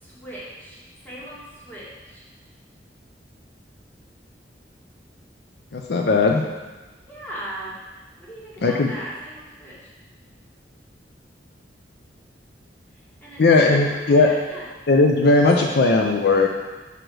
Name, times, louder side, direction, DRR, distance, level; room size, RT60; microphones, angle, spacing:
voice 1, 0.0-2.2 7.1-7.8 8.2-9.9 13.2-13.4 13.7-14.7, right 1 dB, 10° left, -7 dB, 1.9 m, -38 dB
voice 2, 5.7-6.4 8.6-8.9 13.4-14.3 14.9-16.5, left 3 dB, 65° left, 1 dB, 0.6 m, -17 dB
5.1 x 4.9 x 6.2 m, 1.2 s
head